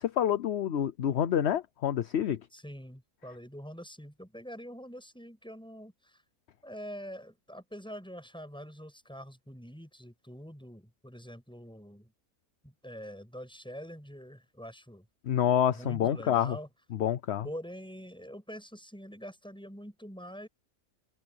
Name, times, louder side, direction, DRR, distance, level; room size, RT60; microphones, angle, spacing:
voice 1, 0.0-2.4 15.3-16.6 16.9-17.4, left 10 dB, 55° left, 0.9 m, -27 dB
voice 2, 2.5-6.2 6.6-12.1 12.6-15.0 15.7-16.7 17.4-20.5, equal, 5° left, 7.8 m, -45 dB
open air
omnidirectional pair, 1.6 m